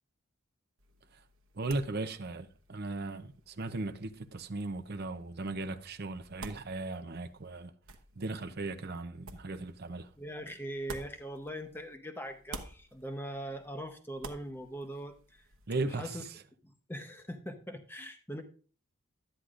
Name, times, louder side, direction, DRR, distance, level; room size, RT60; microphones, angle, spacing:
sound 1, 0.8-12.0 12.3-15.7, right 3 dB, 70° right, 1.1 m, -52 dB
voice 1, 1.5-7.7 8.2-10.1 15.7-16.2, right 2 dB, 50° right, 0.6 m, -37 dB
voice 2, 10.2-15.5 15.9-16.2 16.6-18.4, equal, 10° left, 0.8 m, -41 dB
12.0 x 9.6 x 2.5 m
head